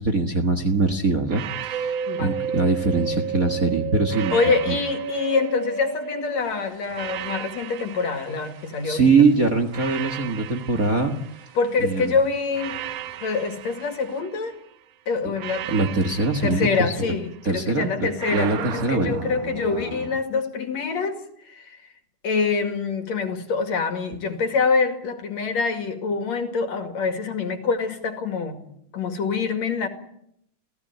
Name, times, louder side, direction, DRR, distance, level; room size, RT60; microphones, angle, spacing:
voice 1, 0.0-4.8 8.8-11.1 11.8-12.2 15.7-16.9 17.4-19.2, right 3 dB, 35° right, 1.7 m, -22 dB
Ari-Ze, 1.3-3.4 4.1-6.2 6.9-9.1 9.7-11.9 12.5-14.7 15.4-17.5 18.2-20.2, right 11 dB, 80° right, 2.6 m, -37 dB
sound 1, 1.7-11.1 11.4-12.3 12.6-13.5 13.9-14.0, right 6 dB, 55° right, 1.6 m, -32 dB
voice 2, 2.1-2.4 4.3-9.3 11.5-12.8 13.2-14.6 15.1-15.7 16.4-21.8 22.2-28.6 28.9-29.9, left 4 dB, 60° left, 3.4 m, -25 dB
30.0 x 16.0 x 9.4 m
omnidirectional pair, 3.5 m